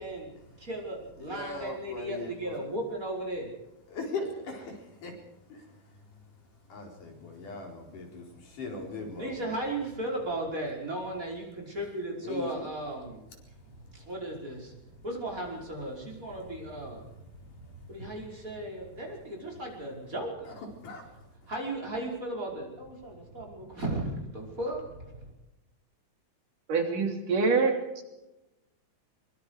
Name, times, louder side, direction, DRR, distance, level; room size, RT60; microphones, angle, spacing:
voice 1, 0.0-3.5 9.1-13.3 13.9-14.7 15.0-17.1 17.6-20.6 21.5-25.2, right 1 dB, 25° right, -1 dB, 5.7 m, -36 dB
voice 2, 1.2-2.6 3.9-4.8 5.0-5.1 6.7-9.6 12.2-12.6 20.5-20.6 20.8-21.0, left 3 dB, 75° left, 1 dB, 5.8 m, -39 dB
voice 3, 26.7-28.0, right 4 dB, 75° right, 3 dB, 4.7 m, -26 dB
23.5 x 23.0 x 4.9 m, 0.96 s
omnidirectional pair, 3.7 m